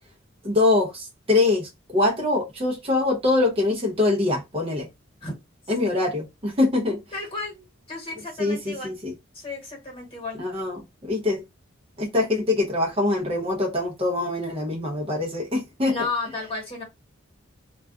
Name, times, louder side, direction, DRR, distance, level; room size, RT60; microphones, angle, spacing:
voice 1, 0.4-4.9 5.7-7.0 8.4-9.1 10.4-11.4 12.0-15.9, left 2 dB, 25° right, 0.6 m, -24 dB
voice 2, 6.8-8.9 9.3-10.7 15.9-16.8, left 3 dB, 25° left, 1.2 m, -33 dB
2.3 x 2.2 x 3.6 m
head